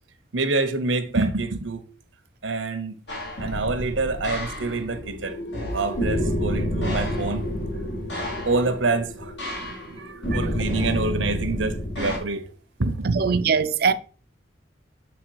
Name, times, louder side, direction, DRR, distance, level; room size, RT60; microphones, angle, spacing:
voice 1, 0.3-1.8 2.4-2.9 3.4-5.4 5.7-7.5 8.5-9.3 9.9-12.4 12.8-13.3, right 3 dB, 90° right, 0.9 m, -26 dB
sound 1, 3.1-12.2, equal, 65° left, 1.6 m, -29 dB
voice 2, 13.0-13.9, right 6 dB, 55° right, 0.5 m, -22 dB
7.3 x 3.3 x 4.8 m
head